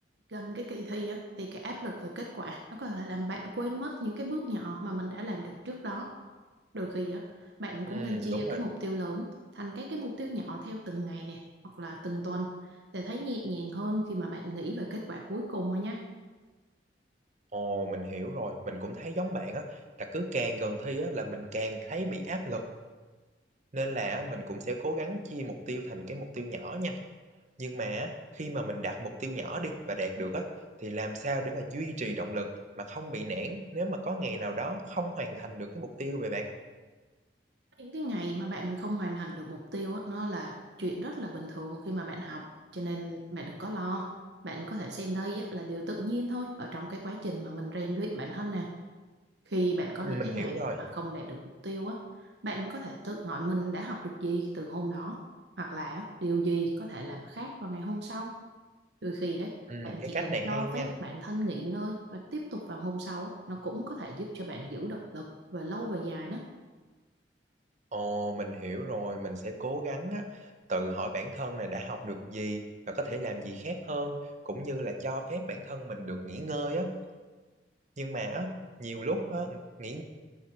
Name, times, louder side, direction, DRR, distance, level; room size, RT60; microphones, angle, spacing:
voice 1, 0.3-6.2 6.7-16.0 37.8-44.1 44.4-48.7 49.5-55.2 55.6-58.4 59.0-59.6 59.8-66.5, right 1 dB, 70° right, 1 dB, 1.2 m, -35 dB
voice 2, 7.9-8.6 17.5-22.6 23.7-27.0 27.6-30.5 30.8-32.5 32.8-36.5 50.0-50.8 59.7-60.9 67.9-74.2 74.4-76.9 78.0-80.0, right 1 dB, 45° right, 5 dB, 1.2 m, -34 dB
13.0 x 7.5 x 4.8 m, 1.3 s
head